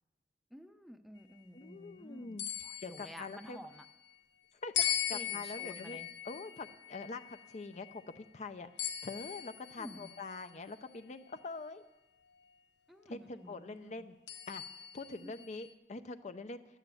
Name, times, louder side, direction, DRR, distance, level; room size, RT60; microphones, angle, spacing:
voice 1, 0.5-3.9 5.1-6.1 9.8-10.1 12.9-14.1 15.2-15.3, equal, ahead, 8 dB, 0.6 m, -51 dB
voice 2, 1.5-2.4 2.8-3.6 4.6-6.0 6.2-11.8 13.1-14.2 14.5-16.6, left 3 dB, 40° left, 10 dB, 0.6 m, -44 dB
sound 1, 2.4-3.9 4.7-8.2 8.8-10.5 11.2-11.3 14.3-15.7, left 9 dB, 90° left, 0.8 m, -39 dB
12.0 x 9.1 x 8.3 m, 1.0 s
head